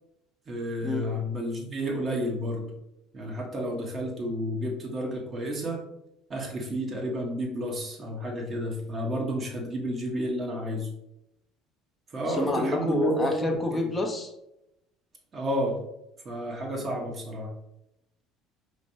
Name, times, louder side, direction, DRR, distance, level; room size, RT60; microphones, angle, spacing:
voice 1, 0.5-2.7 3.1-5.8 6.3-10.9 12.1-13.8 15.3-15.8 16.2-17.5, equal, 35° right, 0 dB, 1.3 m, -31 dB
voice 2, 12.4-14.3, left 2 dB, 15° left, 2 dB, 0.8 m, -28 dB
5.0 x 3.2 x 2.9 m, 0.85 s
hypercardioid pair, 65°, 0 cm